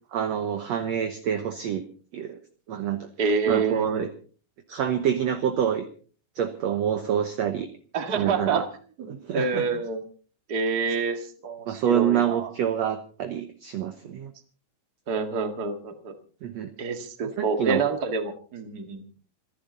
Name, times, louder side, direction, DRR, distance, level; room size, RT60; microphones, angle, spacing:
voice 1, 0.1-1.8 2.1-2.4 2.7-3.1 3.4-4.1 4.7-5.9 6.4-7.7 8.1-8.6 9.1-9.8 11.7-14.3 16.4-16.7 17.4-17.8, right 9 dB, 65° right, 7 dB, 1.9 m, -27 dB
voice 2, 3.2-4.1 7.9-8.6 9.3-10.0 10.5-12.5 15.1-16.1 16.8-19.0, right 4 dB, 35° right, 7 dB, 1.9 m, -27 dB
27.0 x 11.0 x 4.0 m, 0.42 s
omnidirectional pair, 4.0 m